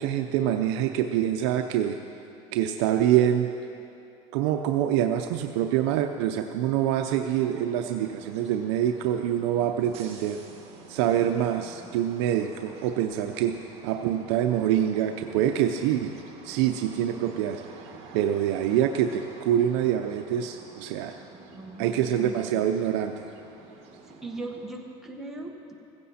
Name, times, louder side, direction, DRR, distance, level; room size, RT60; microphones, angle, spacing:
voice 1, 0.0-2.0 2.5-3.5 4.3-10.4 10.9-13.5 13.8-16.1 16.4-17.6 18.1-21.1 21.8-23.3, right 10 dB, 75° right, 5 dB, 0.7 m, -25 dB
sound 1, 6.8-24.9, right 4 dB, 45° right, 2.1 m, -49 dB
voice 2, 21.5-22.6 24.1-25.7, right 2 dB, 5° right, -1 dB, 1.3 m, -39 dB
16.0 x 15.0 x 4.3 m, 2.7 s
cardioid pair, 155°, 15 cm